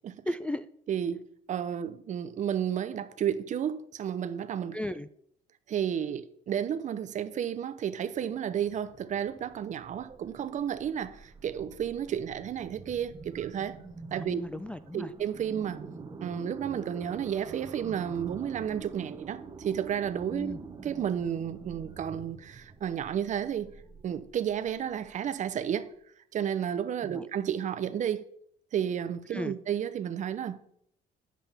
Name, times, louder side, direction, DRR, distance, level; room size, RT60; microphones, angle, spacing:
voice 1, 0.3-0.7 4.7-5.1 14.1-15.1 20.3-20.6 27.1-27.2 29.3-29.6, left 1 dB, 5° left, 0.3 m, -35 dB
voice 2, 0.9-4.8 5.7-13.8 14.1-14.4 14.9-15.8 16.2-23.7 24.0-25.9 26.3-28.2 28.7-30.6, right 9 dB, 45° right, 0.6 m, -32 dB
sound 1, 8.1-25.9, right 4 dB, 25° right, 1.1 m, -47 dB
10.0 x 7.3 x 3.5 m
cardioid pair, 110°, 17 cm